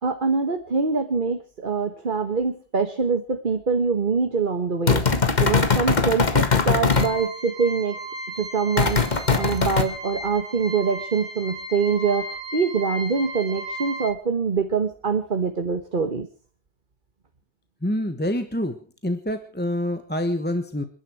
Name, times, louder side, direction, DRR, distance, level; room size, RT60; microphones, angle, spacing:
voice 1, 0.0-5.0 5.4-8.0 8.4-9.0 9.3-16.3, right 5 dB, 50° right, 6 dB, 1.5 m, -24 dB
sound 1, 4.9-7.1 8.8-9.8, left 5 dB, 40° left, 1.7 m, -20 dB
sound 2, 6.9-14.1, right 1 dB, 65° right, 2.5 m, -35 dB
voice 2, 17.8-18.8 19.0-20.8, left 1 dB, 10° left, 8 dB, 1.3 m, -26 dB
28.5 x 11.0 x 4.6 m, 0.38 s
omnidirectional pair, 1.2 m